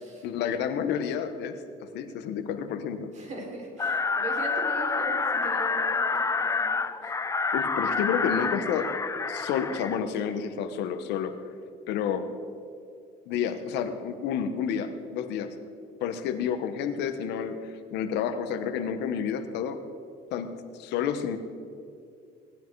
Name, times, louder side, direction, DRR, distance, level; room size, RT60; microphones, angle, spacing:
voice 1, 0.2-3.1 7.5-8.9 9.3-11.4 11.9-12.3 13.3-15.6 16.0-19.8 20.3-21.4, left 7 dB, 85° left, 9 dB, 1.1 m, -30 dB
voice 2, 3.1-6.8 7.0-7.1, right 2 dB, 45° right, -1 dB, 4.4 m, -39 dB
sound 1, 3.8-10.0, left 4 dB, 20° left, 0.5 m, -28 dB
18.5 x 12.0 x 4.6 m, 2.4 s
cardioid pair, 110°, 17 cm